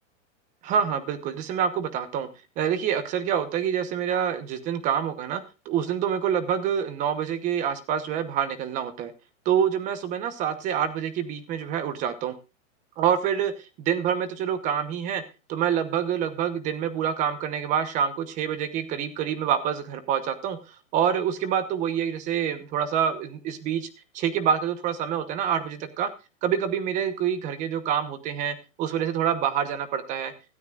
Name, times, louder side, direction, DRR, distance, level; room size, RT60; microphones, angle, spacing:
voice 1, 0.6-2.3 2.6-9.1 9.4-12.3 13.0-13.5 13.8-15.2 15.5-20.6 20.9-23.9 24.1-26.1 26.4-30.3, right 8 dB, 20° right, 12 dB, 1.0 m, -26 dB
17.0 x 13.5 x 2.5 m, 0.30 s
supercardioid pair, 165°, 39 cm